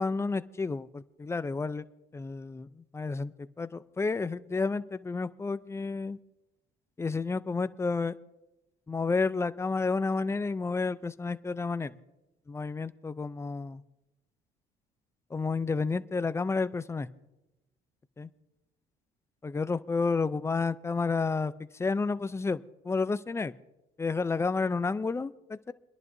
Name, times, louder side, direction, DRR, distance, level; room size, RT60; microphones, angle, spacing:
voice 1, 0.0-1.8 2.1-2.7 2.9-6.2 7.0-8.1 8.9-11.9 12.5-13.8 15.3-17.1 18.2-18.3 19.4-23.5 24.0-25.7, left 4 dB, 15° left, 14 dB, 0.4 m, -31 dB
29.5 x 11.0 x 2.6 m, 0.96 s
cardioid pair, 110°, 17 cm